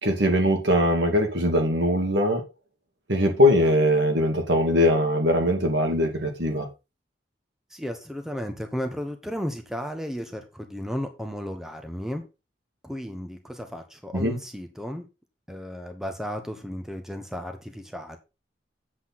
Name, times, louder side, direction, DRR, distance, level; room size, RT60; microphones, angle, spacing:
voice 1, 0.0-2.4 3.1-6.7 14.1-14.3, equal, 70° right, 2.5 m, -21 dB
voice 2, 7.7-12.2 12.8-15.1 15.5-18.2, equal, ahead, 1.0 m, -34 dB
8.2 x 7.7 x 4.1 m
head